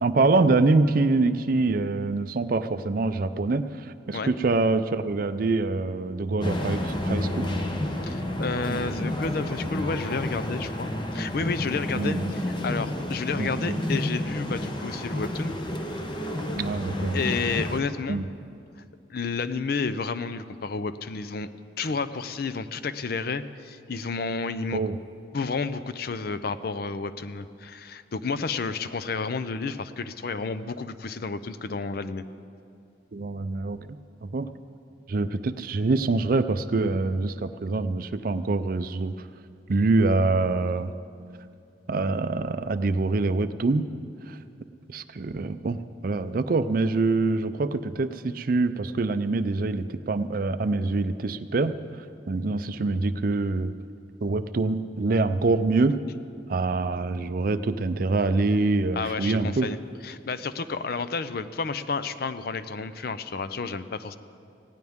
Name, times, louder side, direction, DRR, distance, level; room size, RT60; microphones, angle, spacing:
voice 1, 0.0-7.5 12.0-12.3 13.4-13.8 16.5-17.2 18.1-18.2 24.7-25.0 33.1-34.5 35.1-39.1 39.7-40.9 41.9-43.9 44.3-44.4 44.9-51.7 52.3-53.7 54.2-56.0 56.5-59.7, right 3 dB, 50° right, 12 dB, 0.4 m, -25 dB
sound 1, 6.4-17.8, left 1 dB, 25° left, 0.9 m, -30 dB
voice 2, 8.0-15.5 17.1-18.2 19.1-21.5 21.8-24.8 25.3-32.2 58.9-59.8 60.0-64.2, left 4 dB, 55° left, 13 dB, 0.5 m, -31 dB
19.0 x 16.5 x 3.6 m, 2.4 s
head